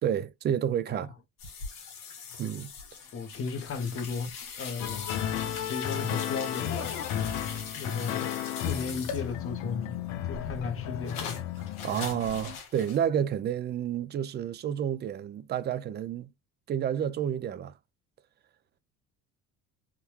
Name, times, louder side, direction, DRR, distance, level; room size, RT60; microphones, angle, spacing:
voice 1, 0.0-1.1 2.4-2.7 11.8-16.3 16.7-17.7, right 9 dB, 30° right, 0.4 m, -30 dB
sound 1, 1.4-9.6 10.0-13.0, left 6 dB, 85° left, 1.4 m, -42 dB
voice 2, 3.1-5.1 5.7-6.9 7.7-10.0 10.3-11.4, left 5 dB, 40° left, 0.9 m, -35 dB
sound 2, 4.8-12.6, left 10 dB, 65° left, 0.7 m, -34 dB
3.6 x 2.2 x 3.0 m
cardioid pair, 105°, 33 cm